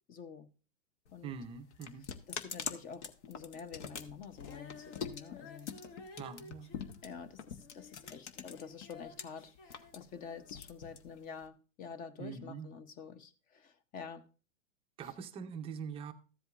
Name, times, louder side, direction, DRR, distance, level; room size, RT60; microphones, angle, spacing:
voice 1, 0.1-0.5 1.1-1.3 2.3-5.8 7.0-14.3 15.0-15.1, left 6 dB, 20° left, 0.7 m, -48 dB
sound 1, 1.1-9.2 9.6-11.5, left 7 dB, 65° left, 1.2 m, -44 dB
voice 2, 1.2-2.1 6.2-6.7 12.2-12.7 15.0-16.1, right 6 dB, 15° right, 0.5 m, -43 dB
Female singing, 4.4-10.7 11.4-11.5, left 4 dB, 45° left, 1.7 m, -55 dB
14.0 x 7.9 x 2.4 m
hypercardioid pair, 130°, 38 cm